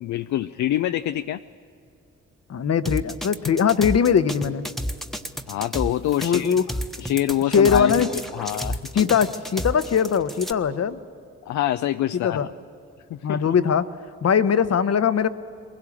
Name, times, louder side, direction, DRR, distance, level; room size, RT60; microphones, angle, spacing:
voice 1, 0.0-1.4 5.5-6.6 7.0-8.8 11.5-12.4 13.1-13.5, left 12 dB, 75° left, 10 dB, 0.5 m, -25 dB
voice 2, 2.5-4.6 6.2-6.6 7.5-8.1 8.9-11.0 12.2-12.5 13.2-13.9 14.2-15.3, left 7 dB, 55° left, 12 dB, 1.0 m, -20 dB
sound 1, 2.9-10.5, equal, ahead, 1.3 m, -31 dB
21.5 x 17.0 x 8.5 m, 2.6 s
supercardioid pair, 50°, 30 cm